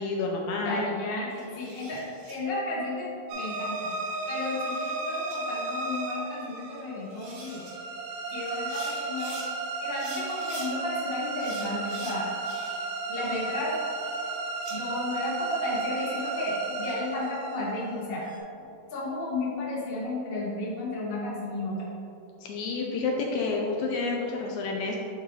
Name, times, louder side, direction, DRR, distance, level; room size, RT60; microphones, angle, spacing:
voice 1, 0.0-0.8 22.4-25.0, left 3 dB, 80° left, 0 dB, 1.8 m, -29 dB
voice 2, 0.6-3.9 4.3-7.6 8.3-9.4 9.8-12.3 13.1-13.8 14.7-18.2 18.9-21.7, left 1 dB, 60° left, -6 dB, 0.6 m, -33 dB
sound 1, 1.3-2.3 3.9-4.9 5.3-5.4 6.8-6.9 7.1-7.7 8.5-9.5 9.9-10.7 11.4-12.9 13.2-14.7, right 2 dB, 55° right, 2.3 m, -46 dB
sound 2, 3.3-18.4, right 3 dB, 85° right, 2.3 m, -34 dB
11.0 x 3.7 x 3.1 m, 2.8 s
omnidirectional pair, 3.8 m